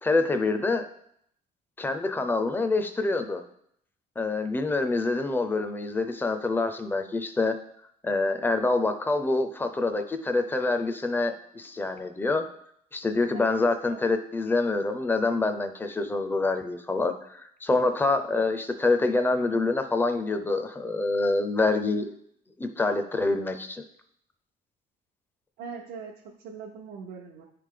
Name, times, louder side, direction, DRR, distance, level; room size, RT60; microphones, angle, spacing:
voice 1, 0.0-0.9 1.8-3.4 4.2-7.6 8.0-12.4 12.9-22.1 22.6-23.8, left 3 dB, 10° left, 6 dB, 0.5 m, -26 dB
voice 2, 25.6-27.4, right 6 dB, 75° right, -2 dB, 0.8 m, -41 dB
10.0 x 3.4 x 3.7 m, 0.70 s
cardioid pair, 110°, 17 cm